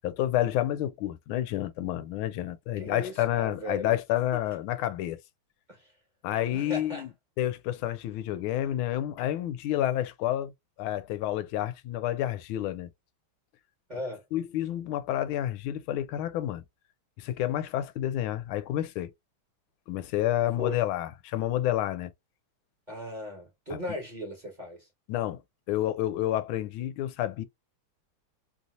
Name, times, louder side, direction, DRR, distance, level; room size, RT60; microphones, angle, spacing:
voice 1, 0.0-5.2 6.2-7.1 7.4-10.5 10.8-12.9 14.3-16.6 17.2-19.1 19.9-22.1 25.1-25.4 25.7-27.4, left 12 dB, 85° left, 1.4 m, -29 dB
voice 2, 2.8-4.0 5.7-5.9 6.5-7.0 13.9-14.2 20.6-20.8 22.9-24.9, left 1 dB, 25° right, 1.3 m, -38 dB
3.4 x 2.8 x 2.5 m
omnidirectional pair, 2.2 m